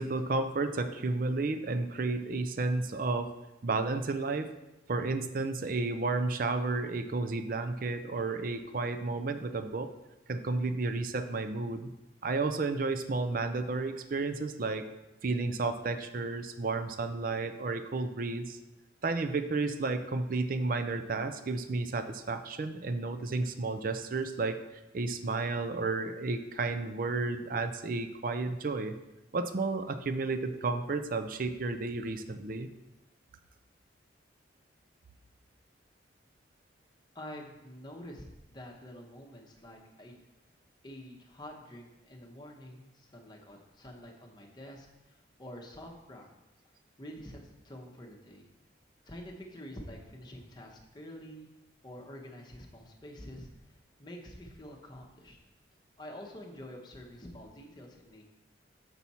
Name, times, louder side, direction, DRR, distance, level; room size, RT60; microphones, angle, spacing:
voice 1, 0.0-3.3 3.6-4.5 4.9-9.9 10.3-11.9 12.2-14.9 15.2-18.6 19.0-24.6 24.9-29.0 29.3-32.7, right 3 dB, 45° right, 10 dB, 0.4 m, -32 dB
voice 2, 37.1-40.2 40.8-46.3 47.0-47.4 47.6-48.4 49.0-51.5 51.8-55.4 56.0-58.2, equal, 20° left, 0 dB, 0.9 m, -47 dB
6.9 x 5.9 x 4.2 m, 0.99 s
head